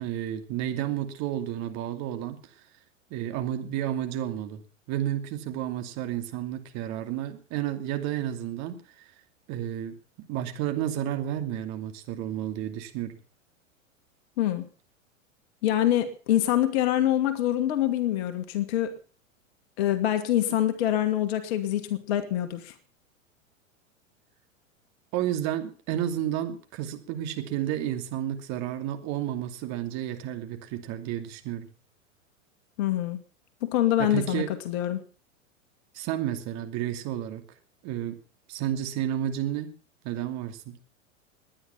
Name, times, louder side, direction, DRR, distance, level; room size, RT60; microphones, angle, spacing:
voice 1, 0.0-2.4 3.1-4.6 4.9-9.1 9.5-13.2 25.1-31.7 34.0-34.5 35.9-37.4 37.8-38.2 38.5-39.7 40.0-40.8, right 11 dB, 40° right, 6 dB, 2.7 m, -31 dB
voice 2, 14.4-14.7 15.6-18.9 19.8-22.7 32.8-33.2 33.6-35.0, left 12 dB, 50° left, 8 dB, 1.9 m, -25 dB
20.5 x 10.0 x 5.7 m, 0.39 s
hypercardioid pair, 100°, 40 cm